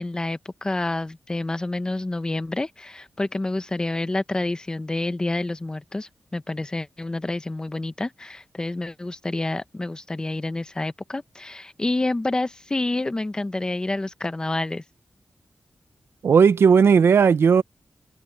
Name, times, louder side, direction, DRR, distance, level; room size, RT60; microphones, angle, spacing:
voice 1, 0.0-14.8, left 2 dB, 20° left, 0.8 m, -28 dB
voice 2, 16.2-17.6, right 6 dB, 80° right, 0.6 m, -15 dB
wide cardioid pair, 160°, 4 cm